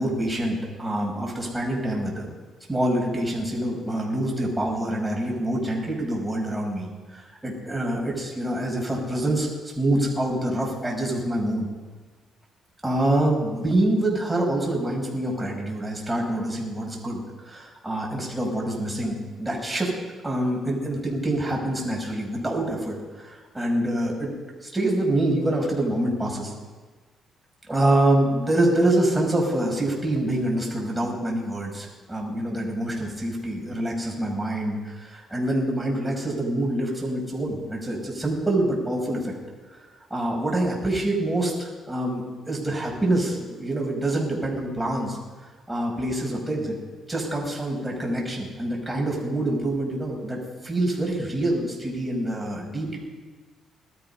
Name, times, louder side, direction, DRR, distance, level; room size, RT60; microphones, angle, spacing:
voice 1, 0.0-2.3 2.7-9.5 9.8-11.7 12.8-19.9 20.2-26.5 27.7-39.3 40.1-45.2 45.7-46.8 47.1-50.4 50.6-53.0, right 1 dB, 10° right, -2 dB, 5.5 m, -26 dB
19.0 x 13.0 x 5.6 m, 1.4 s
cardioid pair, 90°, 0 cm